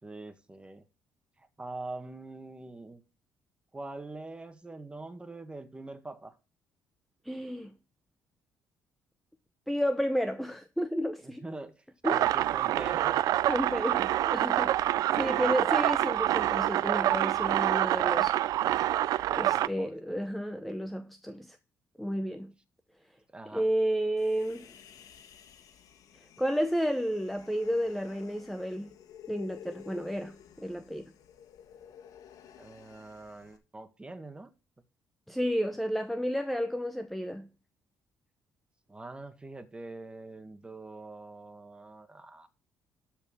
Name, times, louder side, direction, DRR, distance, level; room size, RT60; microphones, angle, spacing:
voice 1, 0.0-0.8 1.4-3.0 3.7-6.4 11.2-11.8 12.1-13.2 15.1-15.6 19.4-20.3 23.3-23.7 32.6-34.5 38.9-42.5, right 2 dB, 15° right, 1.7 m, -44 dB
voice 2, 7.2-7.7 9.7-11.4 12.0-12.2 13.5-14.8 15.1-18.4 19.3-21.6 22.0-22.5 23.5-24.7 26.4-28.9 29.3-31.1 35.3-37.5, equal, ahead, 0.8 m, -31 dB
sound 1, 12.0-19.7, right 13 dB, 75° right, 0.4 m, -26 dB
Human voice, 24.2-33.6, left 9 dB, 70° left, 1.6 m, -53 dB
12.5 x 4.5 x 5.8 m
cardioid pair, 95°, 6 cm